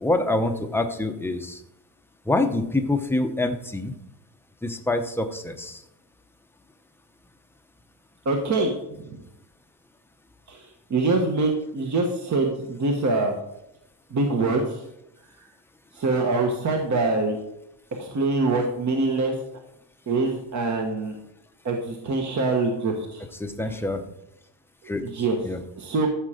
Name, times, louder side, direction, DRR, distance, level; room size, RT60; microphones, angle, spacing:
voice 1, 0.0-1.6 2.3-3.9 4.6-5.8 23.4-24.0 24.9-25.0 25.4-25.6, left 2 dB, 5° left, 6 dB, 0.8 m, -25 dB
voice 2, 8.2-8.7 10.5-10.6 10.9-13.3 14.1-14.8 15.9-17.4 18.0-19.3 20.1-21.1 21.6-23.2 25.0-25.4 25.8-26.1, right 3 dB, 40° right, 2 dB, 1.4 m, -24 dB
13.5 x 7.4 x 5.1 m, 0.82 s
wide cardioid pair, 170°, 44 cm